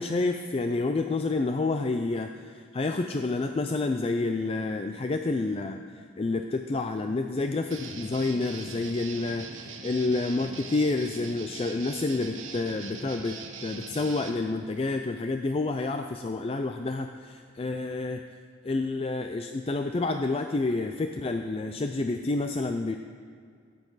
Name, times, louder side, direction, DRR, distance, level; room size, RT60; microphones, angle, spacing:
voice 1, 0.0-5.8 6.2-18.2 18.6-23.0, left 3 dB, 30° left, 6 dB, 0.4 m, -29 dB
Guitar, 7.7-14.4, right 4 dB, 85° right, 1.1 m, -42 dB
14.5 x 9.2 x 4.0 m, 2.2 s
head